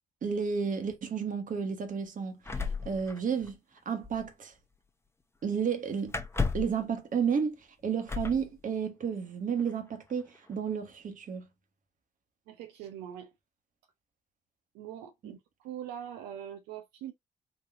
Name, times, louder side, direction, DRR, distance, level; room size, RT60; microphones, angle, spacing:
voice 1, 0.2-3.6 3.8-4.5 5.4-6.2 6.5-11.4 15.2-15.3, right 6 dB, 55° right, 1.2 m, -32 dB
sound 1, 2.4-3.8 4.0-4.2 6.1-6.8 8.1-8.4 9.6-9.7 10.1-10.5, left 4 dB, 15° left, 0.9 m, -33 dB
voice 2, 12.5-13.3 14.7-17.1, right 10 dB, 80° right, 0.5 m, -42 dB
4.1 x 2.8 x 2.5 m
hypercardioid pair, 45°, 17 cm